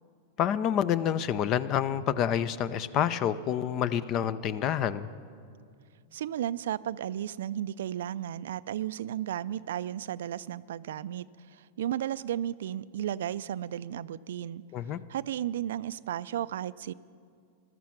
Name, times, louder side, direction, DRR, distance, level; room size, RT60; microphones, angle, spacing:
voice 1, 0.4-5.1 14.7-15.0, left 9 dB, 40° left, 17 dB, 0.6 m, -28 dB
voice 2, 6.1-14.6 15.1-16.9, right 11 dB, 75° right, 17 dB, 0.3 m, -34 dB
15.0 x 12.5 x 5.9 m, 2.3 s
hypercardioid pair, 115°, 0 cm